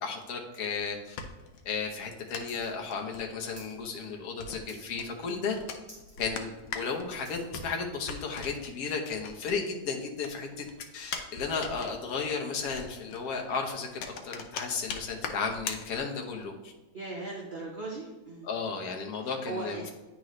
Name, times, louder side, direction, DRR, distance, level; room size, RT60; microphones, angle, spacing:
voice 1, 0.0-1.2 1.6-5.6 6.2-10.6 10.9-16.7 18.4-19.9, left 5 dB, 55° left, 2 dB, 1.2 m, -34 dB
sound 1, 1.1-9.9 10.2-16.5, left 5 dB, 85° left, 1.5 m, -42 dB
sound 2, 2.5-2.7 2.9-3.8 4.1-4.4 4.7-5.1 5.5-5.6 5.8-6.2 6.6-7.5 8.2-8.3, equal, 5° right, 2.0 m, -52 dB
voice 2, 16.9-18.5 19.2-19.9, right 3 dB, 50° right, -3 dB, 0.6 m, -38 dB
9.5 x 3.8 x 3.1 m, 1.1 s
omnidirectional pair, 2.2 m